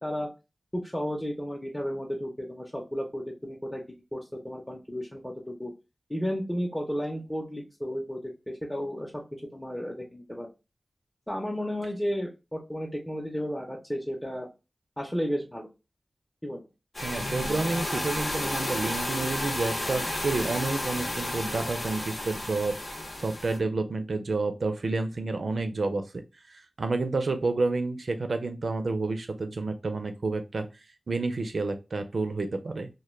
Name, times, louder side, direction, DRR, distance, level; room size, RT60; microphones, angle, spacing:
voice 1, 0.7-5.7 6.1-8.2 8.5-9.2 9.5-10.5 11.3-14.5 15.0-15.7 16.4-16.6, equal, 15° left, -2 dB, 0.6 m, -33 dB
sound 1, 16.9-23.6, left 1 dB, 70° left, 0.9 m, -32 dB
voice 2, 17.0-22.8 23.2-26.2 26.5-30.7 31.1-32.9, right 3 dB, 75° right, 7 dB, 0.4 m, -29 dB
2.2 x 2.1 x 3.1 m, 0.27 s
cardioid pair, 45°, 0 cm